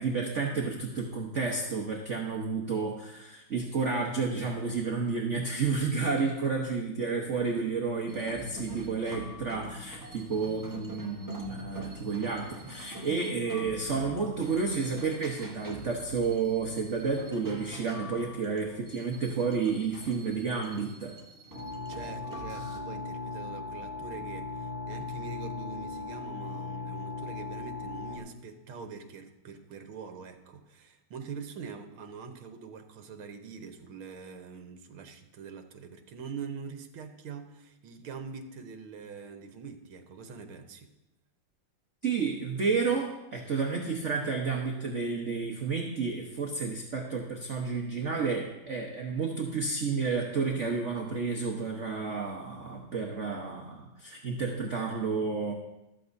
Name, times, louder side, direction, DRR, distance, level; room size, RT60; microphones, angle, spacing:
voice 1, 0.0-21.2 42.0-55.5, right 4 dB, 45° right, 0 dB, 1.1 m, -31 dB
sound 1, 8.1-22.8, equal, 20° right, 0.6 m, -44 dB
sound 2, 21.5-28.2, left 3 dB, 65° left, 2.8 m, -38 dB
voice 2, 21.9-40.9, right 5 dB, 75° right, 6 dB, 1.8 m, -44 dB
14.0 x 13.0 x 2.7 m, 0.94 s
omnidirectional pair, 2.3 m